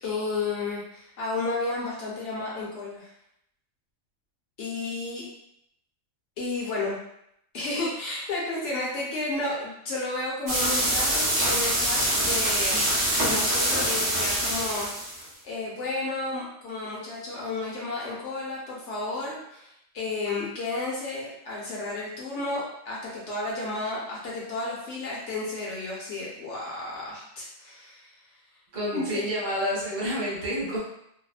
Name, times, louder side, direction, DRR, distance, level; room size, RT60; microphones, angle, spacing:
voice 1, 0.0-3.1 4.6-5.2 6.4-7.0 7.5-12.9 13.2-28.1 28.9-29.2, left 2 dB, 65° left, -5 dB, 0.9 m, -32 dB
sound 1, 10.5-15.2, right 1 dB, 40° right, 0.7 m, -25 dB
voice 2, 28.7-30.8, equal, 70° right, -6 dB, 1.4 m, -29 dB
2.6 x 2.0 x 2.3 m, 0.76 s
omnidirectional pair, 1.4 m